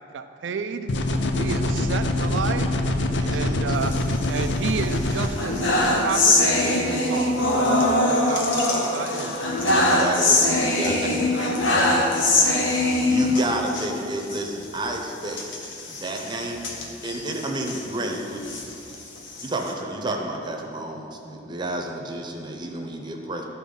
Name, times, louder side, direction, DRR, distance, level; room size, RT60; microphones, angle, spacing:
voice 1, 0.1-0.9 1.3-2.8 3.3-3.9 4.3-9.4, right 5 dB, 70° right, 8 dB, 0.4 m, -31 dB
sound 1, 0.9-5.3, left 1 dB, 65° left, 0.6 m, -24 dB
voice 2, 3.2-3.6 9.9-11.0 13.1-15.4 15.9-16.7 17.0-18.5 19.4-23.4, right 1 dB, 25° right, 1 dB, 0.8 m, -30 dB
sound 2, 3.8-4.7 5.1-13.9 14.2-14.4 14.6-14.8 15.3-17.8 18.3-19.7, left 2 dB, 80° left, 1.0 m, -22 dB
voice 3, 10.7-12.8, left 1 dB, 25° left, 0 dB, 1.0 m, -37 dB
12.5 x 4.2 x 5.5 m, 2.7 s
head